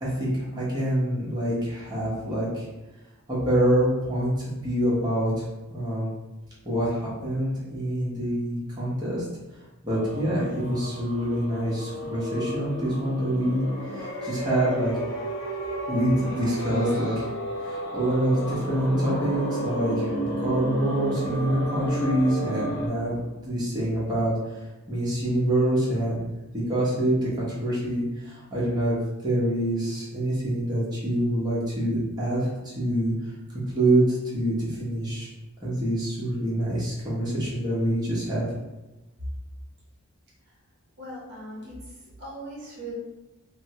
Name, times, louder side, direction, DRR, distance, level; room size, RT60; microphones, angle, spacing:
voice 1, 0.0-2.7 3.3-5.4 5.7-6.1 6.6-9.2 9.8-13.6 13.9-14.9 15.9-17.2 17.6-23.2 23.4-26.2 26.5-33.1 33.7-35.3 35.6-38.4, right 1 dB, 20° right, -8 dB, 0.9 m, -26 dB
sound 1, 9.9-22.9, equal, 15° left, 0.8 m, -32 dB
voice 2, 41.0-42.9, right 1 dB, 50° right, -5 dB, 0.8 m, -40 dB
3.4 x 2.1 x 2.8 m, 1.1 s
head